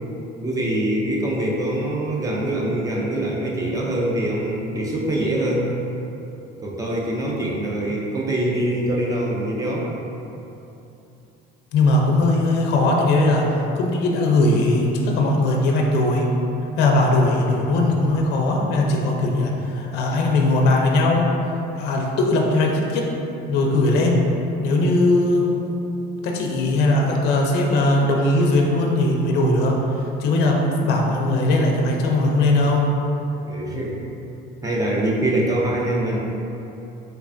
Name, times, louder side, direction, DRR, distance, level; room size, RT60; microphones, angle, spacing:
voice 1, 0.4-5.7 6.6-9.9 33.4-34.0 34.6-36.2, right 1 dB, 15° right, -3 dB, 0.3 m, -24 dB
voice 2, 11.7-16.3 16.8-21.3 21.8-23.1 23.5-24.3 24.6-25.7 26.2-29.8 30.2-32.9, left 2 dB, 55° left, 0 dB, 0.4 m, -19 dB
3.3 x 3.2 x 2.5 m, 2.9 s
cardioid pair, 155°, 20 cm